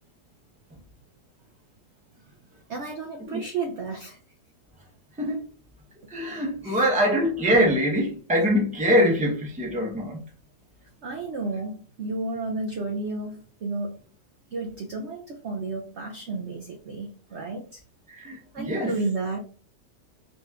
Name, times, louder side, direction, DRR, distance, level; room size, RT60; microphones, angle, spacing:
voice 1, 2.7-4.2 6.6-6.9 11.0-14.0 14.5-17.8 18.5-19.4, right 3 dB, 75° right, 0.6 m, -32 dB
voice 2, 6.1-10.2 18.1-18.9, equal, 10° right, 0.5 m, -23 dB
4.3 x 4.0 x 2.4 m
omnidirectional pair, 1.9 m